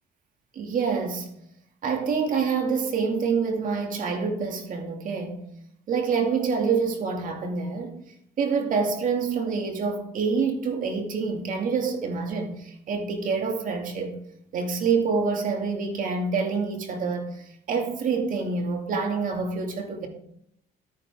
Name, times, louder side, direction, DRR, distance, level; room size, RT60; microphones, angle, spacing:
voice 1, 0.5-1.3 1.8-5.5 5.9-8.0 8.4-14.1 14.5-20.1, right 5 dB, 55° right, 2.3 m, -27 dB
12.5 x 9.9 x 3.6 m
cardioid pair, 110°, 17 cm